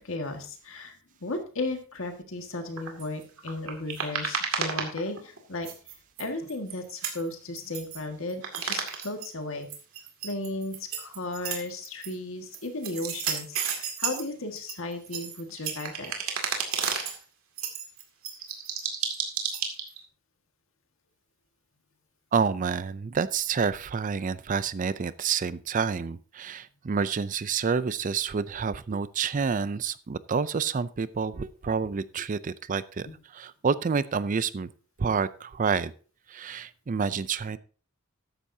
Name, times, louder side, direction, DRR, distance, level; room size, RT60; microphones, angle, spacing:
voice 1, 0.0-5.7 6.2-9.7 10.2-16.1 33.1-33.2, left 2 dB, 65° left, 5 dB, 1.8 m, -35 dB
sound 1, 2.8-5.4 5.6-8.0 8.3-9.3 9.6-12.1 12.5-14.2 14.6-17.2 17.6-20.0, right 7 dB, 70° right, 2.3 m, -32 dB
voice 2, 22.3-33.1 33.3-34.7 35.0-35.9 36.3-37.6, right 5 dB, 40° right, 16 dB, 0.4 m, -28 dB
13.5 x 10.0 x 2.7 m, 0.39 s
head